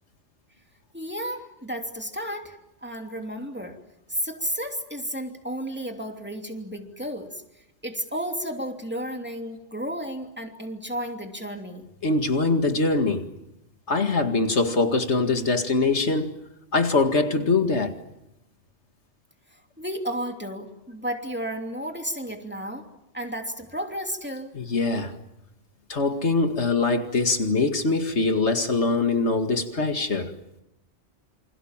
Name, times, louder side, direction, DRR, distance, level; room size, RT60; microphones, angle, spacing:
voice 1, 0.9-3.8 4.1-7.4 7.8-11.8 19.5-22.9 23.1-24.5, equal, 10° right, 2.9 m, -33 dB
voice 2, 12.0-13.3 13.9-16.3 16.7-18.0 24.5-25.1 25.9-30.3, left 3 dB, 75° left, 2.4 m, -23 dB
28.0 x 27.0 x 7.4 m
omnidirectional pair, 1.2 m